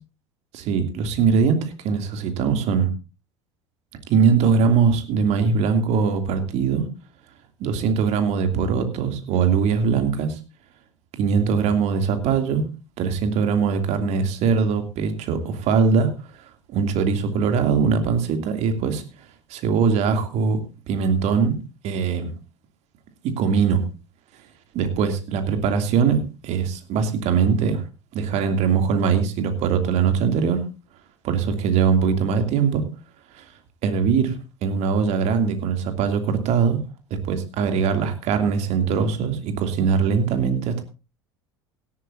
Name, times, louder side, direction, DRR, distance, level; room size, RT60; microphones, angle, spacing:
voice 1, 0.5-2.9 4.1-6.8 7.6-10.4 11.1-12.6 13.0-16.1 16.7-19.0 19.5-20.6 20.9-21.5 21.8-22.3 23.4-23.8 24.7-27.8 28.1-30.6 31.2-32.8 33.3-33.4 33.8-34.3 34.6-36.8 37.1-40.8, right 6 dB, 50° right, 7 dB, 2.8 m, -21 dB
18.0 x 13.5 x 2.7 m, 0.30 s
figure-of-eight pair, 70°, 15 cm